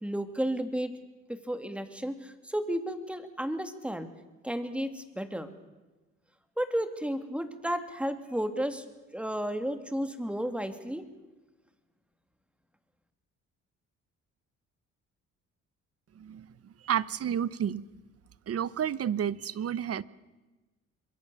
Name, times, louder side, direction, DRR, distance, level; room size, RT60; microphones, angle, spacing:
voice 1, 0.0-0.9 1.3-4.1 4.4-5.5 6.6-8.8 9.1-11.1, equal, 5° right, 8 dB, 2.7 m, -33 dB
voice 2, 16.2-17.8 18.5-20.0, right 9 dB, 50° right, 18 dB, 1.0 m, -31 dB
27.0 x 22.0 x 7.1 m, 1.2 s
cardioid pair, 90°, 30 cm